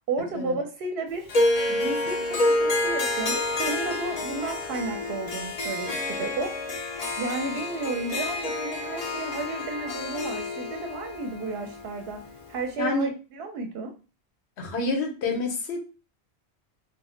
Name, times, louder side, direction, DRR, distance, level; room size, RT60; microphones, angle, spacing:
voice 1, 0.1-1.3 1.7-13.9, right 3 dB, 70° right, 5 dB, 0.8 m, -33 dB
Harp, 1.3-12.6, left 2 dB, 55° left, 0.4 m, -29 dB
voice 2, 12.8-13.1 14.6-15.8, left 3 dB, 85° left, 2 dB, 1.0 m, -28 dB
2.3 x 2.0 x 3.6 m, 0.34 s
omnidirectional pair, 1.1 m